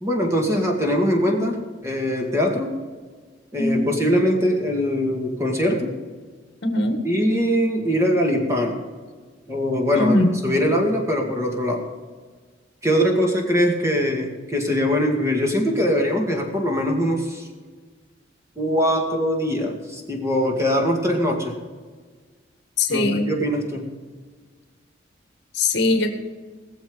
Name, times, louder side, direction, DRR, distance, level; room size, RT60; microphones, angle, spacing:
voice 1, 0.0-2.8 3.5-6.0 7.0-8.8 9.5-11.9 12.8-17.5 18.6-21.6 22.9-23.9, equal, 15° right, 1 dB, 2.2 m, -22 dB
voice 2, 3.6-3.9 6.6-7.0 9.9-10.3 22.8-23.3 25.5-26.1, left 2 dB, 60° left, 5 dB, 1.8 m, -20 dB
20.0 x 7.1 x 5.4 m, 1.5 s
head